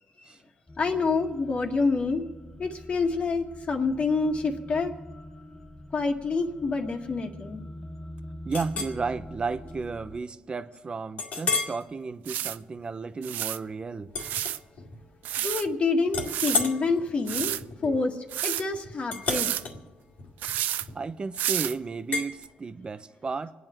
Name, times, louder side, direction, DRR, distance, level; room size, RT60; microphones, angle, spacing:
sound 1, 0.7-10.2, equal, 15° left, 0.9 m, -44 dB
voice 1, 0.8-2.2 2.6-4.9 5.9-7.6 15.4-17.6 17.8-18.2 18.4-19.5, left 4 dB, 45° left, 4 dB, 1.8 m, -27 dB
voice 2, 8.4-14.1 20.9-23.5, right 4 dB, 35° right, 12 dB, 0.8 m, -33 dB
Chink clink, 8.5-9.0 9.5-9.7 10.1-10.2 11.2-11.8 12.3-12.6 14.1-15.0 15.3-15.7 16.1-21.2 22.1-22.3, left 4 dB, 75° left, 2.2 m, -33 dB
sound 2, 11.5-11.6 12.3-12.6 13.2-13.6 14.2-14.6 15.2-15.7 16.2-16.6 17.3-17.6 18.3-18.6 19.3-19.6 20.4-20.9 21.4-21.8 22.4-22.5, right 12 dB, 85° right, 0.4 m, -30 dB
25.5 x 9.4 x 4.5 m, 1.2 s
cardioid pair, 80°, 3 cm